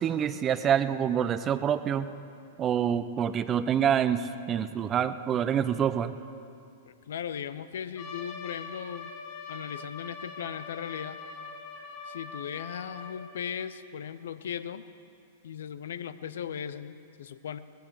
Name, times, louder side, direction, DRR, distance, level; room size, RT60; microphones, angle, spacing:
voice 1, 0.0-2.1 2.6-6.1, right 8 dB, 30° right, 13 dB, 0.6 m, -26 dB
voice 2, 6.9-9.1 9.5-11.2 12.0-14.8 15.4-17.6, left 8 dB, 70° left, 13 dB, 0.6 m, -37 dB
Trumpet, 8.0-13.3, left 4 dB, 50° left, 2.9 m, -42 dB
18.5 x 15.0 x 4.7 m, 2.4 s
hypercardioid pair, 105°, 0 cm